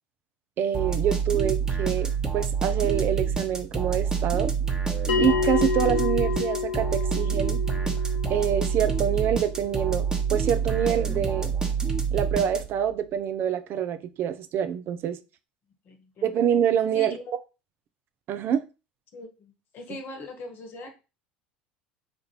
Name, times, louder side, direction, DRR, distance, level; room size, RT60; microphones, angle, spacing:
voice 1, 0.6-4.5 5.2-7.6 8.3-11.5 12.1-15.2 16.2-17.2 18.3-18.6, right 9 dB, 45° right, 0.5 m, -26 dB
sound 1, 0.7-12.9, right 6 dB, 10° right, 1.1 m, -27 dB
Bell, 5.1-10.1, left 7 dB, 80° left, 0.7 m, -30 dB
voice 2, 15.8-16.4 16.9-17.2 19.1-21.0, left 1 dB, 45° left, 1.1 m, -41 dB
4.3 x 2.6 x 4.4 m
hypercardioid pair, 75°, 5 cm